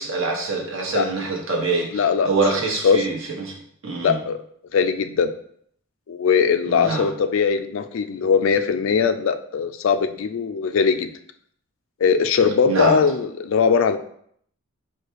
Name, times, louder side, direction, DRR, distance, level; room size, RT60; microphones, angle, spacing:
voice 1, 0.0-3.5 3.8-4.2 6.6-7.1 12.6-13.0, right 3 dB, 70° right, -1 dB, 1.1 m, -25 dB
voice 2, 1.9-2.3 2.8-3.1 4.0-4.4 4.7-5.3 6.1-11.1 12.0-14.0, left 6 dB, 70° left, 10 dB, 0.3 m, -20 dB
4.8 x 2.3 x 4.5 m, 0.66 s
head